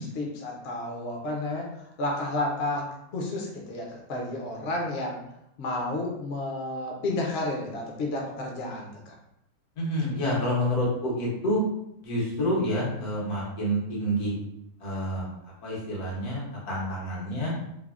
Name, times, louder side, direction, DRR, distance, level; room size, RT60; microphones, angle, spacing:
voice 1, 0.2-5.2 5.6-9.1, left 2 dB, 55° left, -1 dB, 0.7 m, -31 dB
voice 2, 9.8-11.6 12.0-14.4 14.8-15.3 15.6-17.5, equal, 85° left, -5 dB, 1.5 m, -28 dB
3.4 x 2.0 x 2.3 m, 0.80 s
omnidirectional pair, 1.6 m